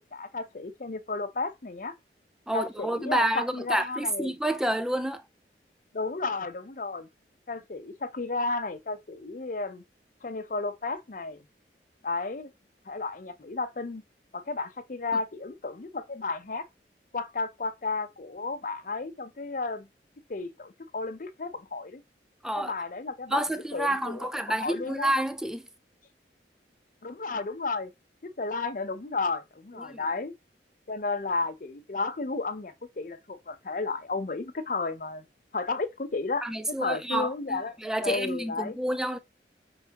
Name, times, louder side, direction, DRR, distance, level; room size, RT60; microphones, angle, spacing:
voice 1, 0.1-1.9 2.5-4.3 5.9-7.1 7.5-9.8 10.2-11.4 12.0-12.5 12.9-14.0 14.3-16.7 17.1-19.9 20.3-22.0 22.6-24.3 24.5-25.1 27.0-27.9 28.2-30.3 30.9-35.2 35.5-37.8 38.0-38.8, left 3 dB, 45° left, 0.6 m, -33 dB
voice 2, 2.5-5.2 22.4-22.7 23.3-25.7 29.8-30.0 36.4-39.2, right 1 dB, 5° right, 0.3 m, -29 dB
5.5 x 3.4 x 2.9 m
head